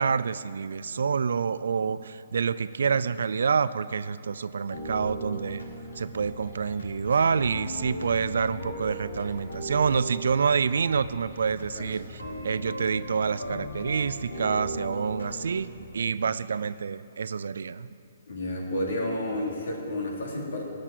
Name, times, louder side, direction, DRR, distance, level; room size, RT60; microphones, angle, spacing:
voice 1, 0.0-5.6 6.0-17.9, right 6 dB, 70° right, 15 dB, 0.4 m, -27 dB
sound 1, 4.7-15.7, equal, 90° left, 3.2 m, -38 dB
voice 2, 18.3-20.6, left 1 dB, 70° left, -1 dB, 3.1 m, -31 dB
16.5 x 6.6 x 9.1 m, 2.7 s
hypercardioid pair, 135°, 0 cm